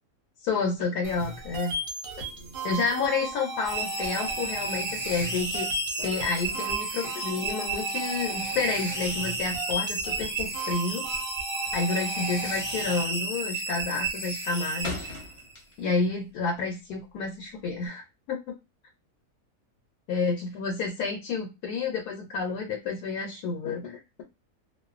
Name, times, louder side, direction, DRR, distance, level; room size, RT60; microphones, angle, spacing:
voice 1, 0.4-1.7 2.2-2.3 2.6-5.7 6.0-11.0 11.7-15.1 15.8-18.4 20.1-24.2, left 4 dB, 80° left, 2 dB, 1.1 m, -30 dB
sound 1, 1.0-13.0, right 2 dB, 65° right, 1.0 m, -36 dB
sound 2, 3.6-15.5, right 3 dB, 20° right, 1.0 m, -33 dB
sound 3, 11.6-12.0 12.3-12.6 13.0-13.4 13.7-16.1 16.4-17.9, left 3 dB, 35° left, 0.8 m, -40 dB
2.4 x 2.3 x 2.3 m, 0.24 s
omnidirectional pair, 1.7 m